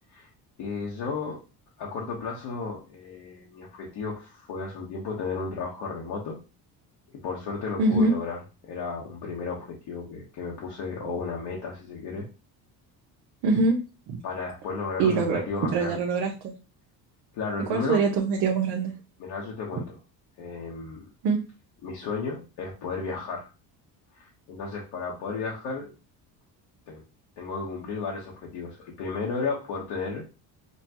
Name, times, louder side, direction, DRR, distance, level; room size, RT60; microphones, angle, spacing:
voice 1, 0.6-1.4 1.8-6.4 7.2-8.4 8.6-12.3 14.2-16.0 17.3-18.0 19.2-20.0 20.4-21.1 21.8-23.5 24.1-25.9 26.9-27.0 27.4-30.2, left 4 dB, 70° left, -4 dB, 1.2 m, -33 dB
voice 2, 7.8-8.1 13.4-13.8 14.1-14.2 15.0-16.5 17.6-18.9 21.2-21.4, right 4 dB, 75° right, 0 dB, 0.9 m, -24 dB
5.8 x 2.3 x 2.9 m, 0.31 s
cardioid pair, 120°, 41 cm